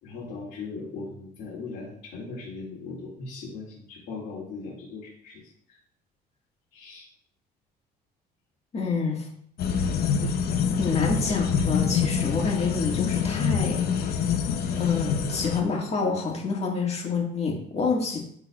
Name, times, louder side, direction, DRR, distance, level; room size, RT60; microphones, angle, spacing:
voice 1, 0.0-5.8 6.7-7.1 11.0-11.2, left 4 dB, 85° left, -8 dB, 2.4 m, -39 dB
voice 2, 8.7-9.3 10.8-13.8 14.8-18.2, left 4 dB, 40° left, 0 dB, 1.8 m, -27 dB
sound 1, 9.6-15.6, left 7 dB, 65° left, 0.8 m, -26 dB
11.5 x 3.9 x 2.4 m, 0.65 s
cardioid pair, 110°, 17 cm